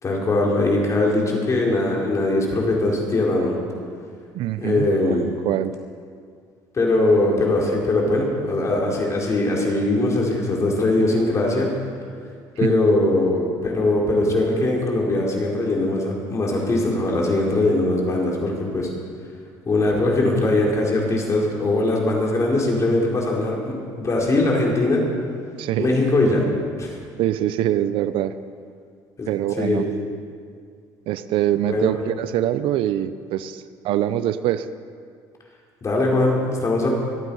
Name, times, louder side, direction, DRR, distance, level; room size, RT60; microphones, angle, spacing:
voice 1, 0.0-3.6 4.6-5.2 6.7-11.7 12.6-18.9 19.7-25.1 25.8-26.4 26.8-26.9 29.2-29.3 29.6-29.9 31.7-31.9 35.8-36.9, left 2 dB, 35° left, -2 dB, 4.4 m, -21 dB
voice 2, 4.3-5.7 12.6-12.8 25.6-25.9 27.2-28.3 29.3-29.9 31.1-34.7, right 12 dB, 70° right, 13 dB, 0.6 m, -24 dB
25.5 x 9.0 x 5.6 m, 2.2 s
supercardioid pair, 95°, 9 cm